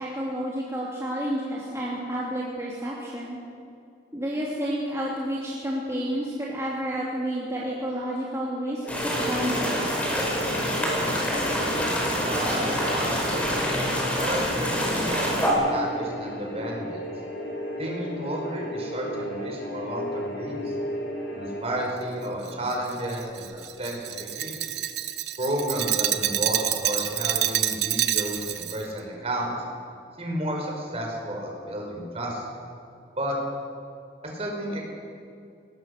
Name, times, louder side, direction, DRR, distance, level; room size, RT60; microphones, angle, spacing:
voice 1, 0.0-3.4 4.1-9.8, equal, 15° right, -6 dB, 2.8 m, -30 dB
sound 1, 8.8-21.6, equal, 75° left, 4.0 m, -35 dB
sound 2, 8.9-15.5, equal, 10° left, 5.3 m, -26 dB
voice 2, 12.2-13.5 14.2-17.0 17.8-20.7 21.3-23.5 23.8-24.5 25.4-29.6 30.2-32.4 33.1-33.4 34.3-34.8, right 1 dB, 35° right, 0 dB, 5.1 m, -32 dB
Glass, 22.5-28.8, right 12 dB, 75° right, 1.0 m, -27 dB
22.0 x 19.0 x 6.6 m, 2.5 s
head